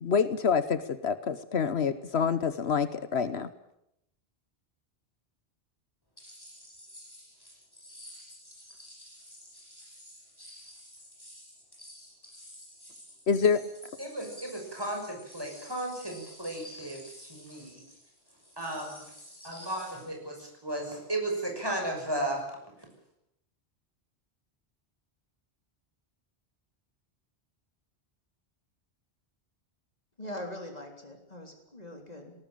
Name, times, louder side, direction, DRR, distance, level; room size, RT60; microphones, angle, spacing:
voice 1, 0.0-3.5 13.3-13.6, left 6 dB, 70° left, 12 dB, 1.3 m, -27 dB
sound 1, 6.2-20.1, equal, 20° left, 8.3 m, -51 dB
voice 2, 14.0-17.7 18.6-19.0 19.4-22.5, right 1 dB, 20° right, 2 dB, 6.3 m, -35 dB
voice 3, 30.2-32.3, left 1 dB, 35° left, 3 dB, 3.8 m, -42 dB
19.0 x 19.0 x 9.0 m, 0.80 s
omnidirectional pair, 1.1 m